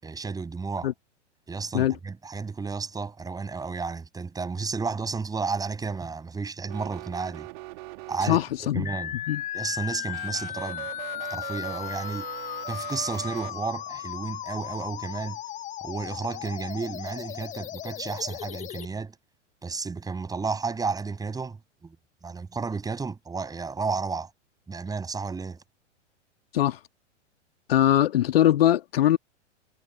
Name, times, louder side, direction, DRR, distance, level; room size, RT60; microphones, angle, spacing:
voice 1, 0.0-0.9 1.5-7.5 8.1-8.4 8.7-9.2 9.5-10.9 11.3-12.3 12.7-15.4 15.8-19.2 19.6-22.0 22.2-24.3 24.7-25.6, right 4 dB, 10° right, 7.5 m, -32 dB
sound 1, 6.6-8.8 10.1-13.5, right 23 dB, 40° right, 3.9 m, -41 dB
voice 2, 8.3-8.9 9.3-9.4 26.5-26.8 27.7-29.2, left 12 dB, 50° left, 2.2 m, -21 dB
sound 2, 8.9-18.9, left 13 dB, 20° left, 1.3 m, -36 dB
figure-of-eight pair, 105°, 37 cm